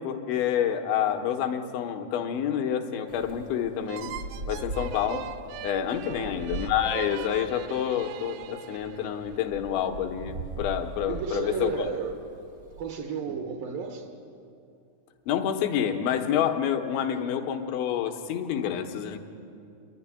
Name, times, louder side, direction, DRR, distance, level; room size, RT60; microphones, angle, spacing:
voice 1, 0.0-4.1 4.5-5.2 5.6-11.9 15.3-19.2, left 9 dB, 75° left, 4 dB, 3.4 m, -28 dB
Wind, 3.1-12.9, right 1 dB, 45° right, 1.2 m, -40 dB
sound 1, 3.9-9.4, right 10 dB, 90° right, 2.3 m, -41 dB
voice 2, 6.1-6.4 11.1-12.2 12.8-14.1, right 6 dB, 70° right, 3 dB, 2.3 m, -33 dB
28.5 x 11.5 x 9.9 m, 2.6 s
omnidirectional pair, 5.5 m